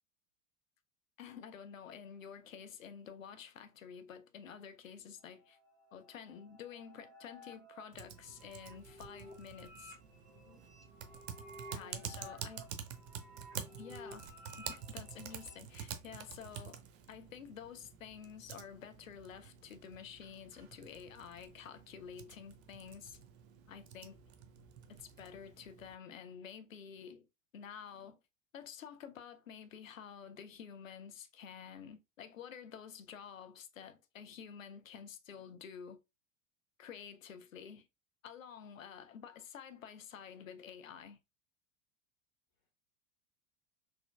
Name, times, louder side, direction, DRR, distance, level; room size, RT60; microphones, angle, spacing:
voice 1, 1.2-5.6 5.9-10.0 11.7-12.7 13.8-14.3 14.6-23.2 23.7-24.2 24.9-27.3 27.5-28.2 28.5-36.0 36.8-37.9 38.2-41.2, left 7 dB, 80° left, 0.6 m, -50 dB
sound 1, 5.2-15.6, equal, ahead, 1.5 m, -55 dB
Typing, 7.9-26.0, right 8 dB, 55° right, 0.6 m, -49 dB
voice 2, 10.3-10.7 11.7-12.5 42.6-42.7, left 2 dB, 50° left, 1.1 m, -61 dB
4.0 x 2.8 x 2.3 m
figure-of-eight pair, 80°, 39 cm